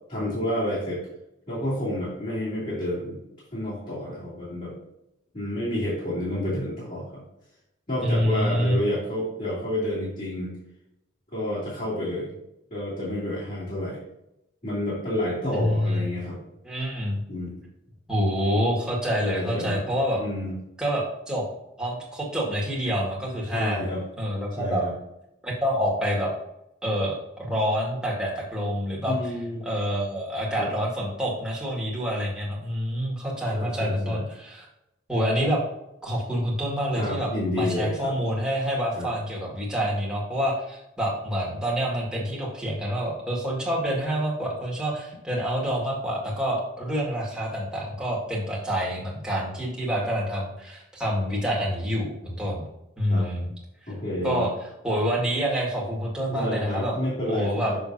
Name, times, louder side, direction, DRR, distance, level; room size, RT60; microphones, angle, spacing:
voice 1, 0.1-1.0 1.5-3.2 3.5-4.7 5.3-7.2 7.9-10.5 11.3-12.4 12.7-14.0 14.6-16.4 17.3-17.6 19.2-19.8 20.2-20.6 23.5-24.0 24.6-24.9 29.1-29.6 30.6-30.7 33.5-34.2 37.0-38.1 38.9-39.1 53.1-53.3 53.9-54.5 56.3-57.8, left 1 dB, 40° left, -10 dB, 2.7 m, -29 dB
voice 2, 8.0-8.8 15.5-16.1 16.6-17.2 18.1-20.2 20.8-21.4 21.8-23.9 24.2-24.8 25.4-26.3 26.8-29.3 29.6-34.7 35.1-35.6 36.0-37.3 37.6-52.6 53.0-53.5 53.8-53.9 54.2-54.5 54.8-56.9 57.3-57.7, equal, 5° right, -5 dB, 1.9 m, -27 dB
6.9 x 6.4 x 2.7 m, 0.86 s
head